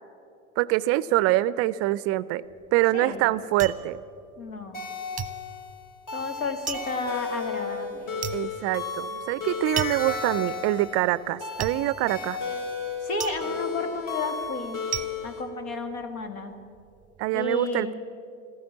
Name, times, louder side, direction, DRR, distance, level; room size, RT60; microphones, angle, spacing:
voice 1, 0.6-2.4 2.7-4.0 8.3-12.4 17.2-17.9, right 16 dB, 40° right, 18 dB, 0.4 m, -25 dB
sound 1, 2.5-4.9 5.2-16.3 16.6-17.2, right 8 dB, 20° right, 0.8 m, -37 dB
voice 2, 4.4-4.8 6.1-8.1 13.0-14.9 15.2-16.5 17.3-17.9, left 3 dB, 80° left, 7 dB, 1.9 m, -32 dB
sound 2, 4.7-15.4, left 5 dB, 50° left, 3.6 m, -34 dB
14.0 x 13.0 x 7.3 m, 2.5 s
hypercardioid pair, 90°, 41 cm